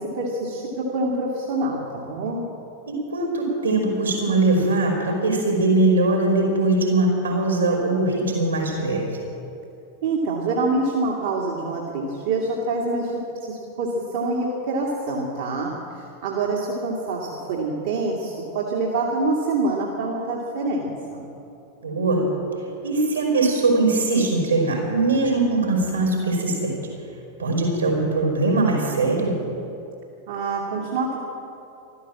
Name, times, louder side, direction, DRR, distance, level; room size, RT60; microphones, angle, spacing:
voice 1, 0.0-2.4 10.0-21.3 30.3-31.2, right 2 dB, 55° right, -3 dB, 2.1 m, -26 dB
voice 2, 2.9-9.1 21.8-22.3 22.8-26.8 27.4-29.4, right 2 dB, 75° right, -1 dB, 4.9 m, -21 dB
14.5 x 13.0 x 7.5 m, 2.8 s
figure-of-eight pair, 90°, 0 cm